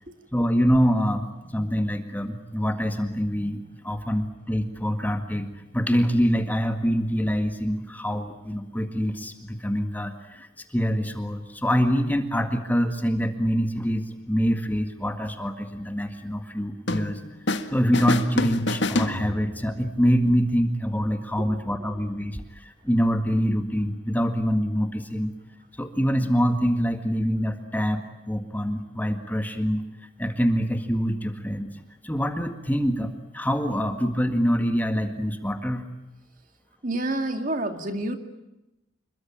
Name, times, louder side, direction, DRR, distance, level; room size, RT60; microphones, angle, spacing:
voice 1, 0.3-17.2 17.5-25.3 25.8-29.8 30.2-31.7 32.0-35.8, equal, 10° left, 7 dB, 1.8 m, -25 dB
sound 1, 16.9-17.7 17.9-19.7, left 2 dB, 70° left, 1.8 m, -27 dB
voice 2, 36.8-38.2, right 1 dB, 45° right, 7 dB, 2.5 m, -28 dB
27.5 x 22.5 x 8.8 m, 0.94 s
head